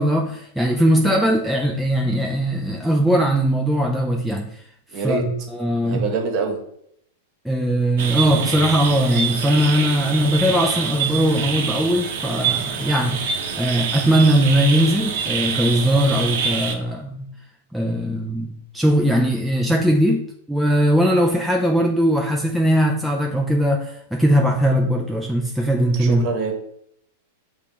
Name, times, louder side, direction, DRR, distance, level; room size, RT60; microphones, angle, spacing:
voice 1, 0.0-4.6 5.0-6.1 7.4-17.3 17.7-26.3, equal, ahead, 0.3 m, -20 dB
voice 2, 4.9-5.2 5.8-6.6 26.0-26.5, right 4 dB, 40° right, 1.1 m, -25 dB
sound 1, 8.0-16.8, right 6 dB, 60° right, 0.7 m, -26 dB
6.6 x 2.4 x 3.4 m
supercardioid pair, 150°, 0 cm